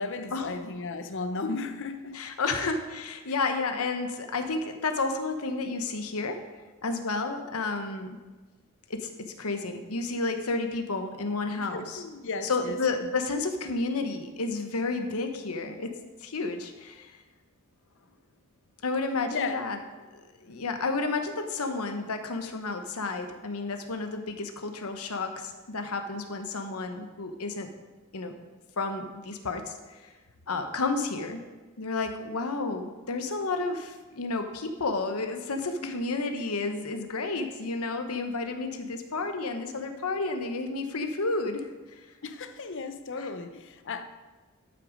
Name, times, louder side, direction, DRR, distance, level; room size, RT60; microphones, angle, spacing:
voice 1, 0.0-2.2 2.5-2.7 11.6-12.8 19.3-19.6 20.5-20.6 35.8-35.9 42.2-44.0, left 3 dB, 60° left, 9 dB, 0.7 m, -35 dB
voice 2, 2.1-6.4 6.8-8.1 8.9-12.0 12.4-15.9 16.2-17.2 18.8-19.8 20.4-27.7 28.1-28.3 28.8-30.1 30.5-31.4 31.8-42.0 43.2-43.3, left 3 dB, 80° left, 6 dB, 1.1 m, -31 dB
12.0 x 6.1 x 5.1 m, 1.3 s
head